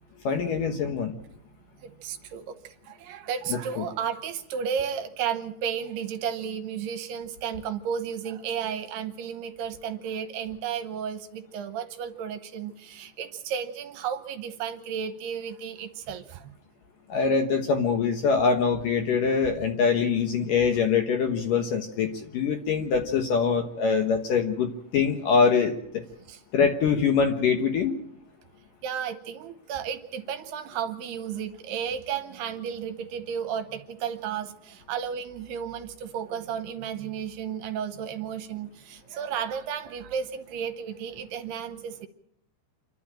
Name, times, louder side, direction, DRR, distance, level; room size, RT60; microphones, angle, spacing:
voice 1, 0.2-1.1 3.5-3.8 17.1-26.0 26.5-27.9, left 5 dB, 65° left, 5 dB, 2.3 m, -24 dB
voice 2, 1.8-16.5 26.3-26.4 28.8-42.1, right 8 dB, 75° right, 9 dB, 2.8 m, -33 dB
27.5 x 12.0 x 8.9 m, 0.73 s
omnidirectional pair, 5.2 m